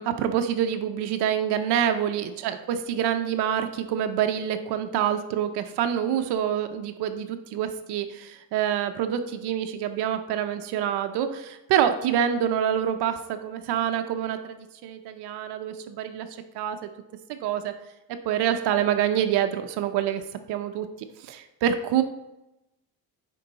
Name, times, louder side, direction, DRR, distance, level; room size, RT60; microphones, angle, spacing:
voice 1, 0.0-5.5 5.8-16.8 17.3-17.7 18.2-20.2 20.5-22.0, right 9 dB, 85° right, 7 dB, 0.7 m, -26 dB
9.9 x 3.8 x 4.0 m, 0.93 s
cardioid pair, 130°, 39 cm